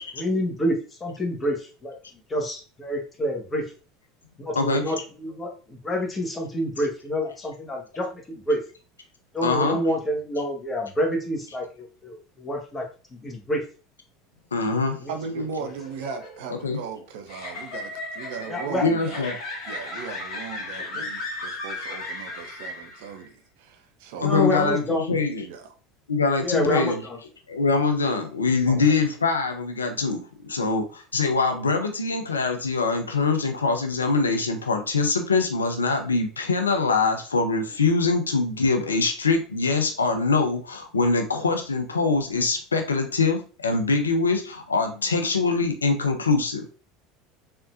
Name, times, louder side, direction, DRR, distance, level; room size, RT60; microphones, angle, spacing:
voice 1, 0.0-2.0 2.3-3.6 4.4-8.6 9.3-12.9 13.1-13.6 15.0-15.1 18.5-18.9 20.9-21.0 24.2-25.1 26.4-27.2, equal, 20° left, 2 dB, 1.4 m, -28 dB
voice 2, 4.5-5.0 9.4-9.8 14.5-15.0 16.6-16.8 18.8-19.3 24.2-25.4 26.1-27.0 27.5-46.8, left 4 dB, 85° left, 6 dB, 0.6 m, -23 dB
voice 3, 15.1-19.2 19.7-24.7 25.4-25.7 28.7-29.0, right 5 dB, 65° right, 6 dB, 0.7 m, -37 dB
sound 1, 15.6-23.2, left 2 dB, 55° left, 2.1 m, -36 dB
4.3 x 3.8 x 2.5 m, 0.36 s
figure-of-eight pair, 75°, 0 cm